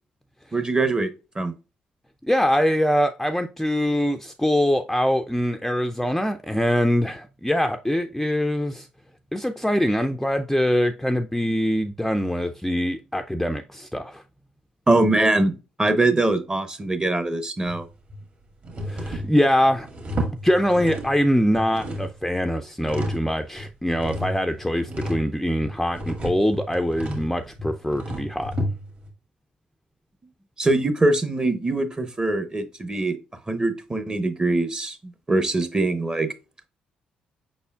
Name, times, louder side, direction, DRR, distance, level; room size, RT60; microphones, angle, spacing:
voice 1, 0.5-1.1 1.4-1.5 14.9-17.9 30.6-33.2 33.5-35.0 35.3-36.3, right 2 dB, 20° right, 0.8 m, -22 dB
voice 2, 2.2-8.9 9.3-14.2 18.8-19.9 20.4-28.5, equal, 5° left, 0.4 m, -23 dB
sound 1, 17.7-18.2 18.6-21.3 21.5-23.3 23.6-29.1, equal, 45° right, 1.7 m, -32 dB
5.2 x 4.2 x 2.3 m
hypercardioid pair, 45°, 4 cm